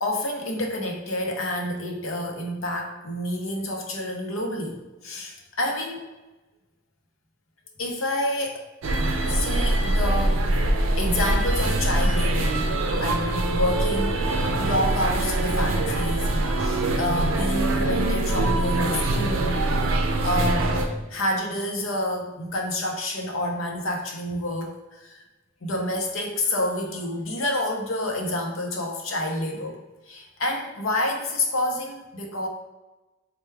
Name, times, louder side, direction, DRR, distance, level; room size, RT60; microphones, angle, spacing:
voice 1, 0.0-6.1 7.8-8.7 9.3-10.4 10.9-12.7 13.0-14.2 14.6-19.6 20.2-20.7 21.1-25.2 25.6-29.8 30.1-32.5, left 1 dB, 70° left, 2 dB, 0.7 m, -28 dB
sound 1, 8.8-20.9, right 2 dB, 75° right, 0.5 m, -23 dB
4.4 x 2.2 x 3.3 m, 1.1 s
head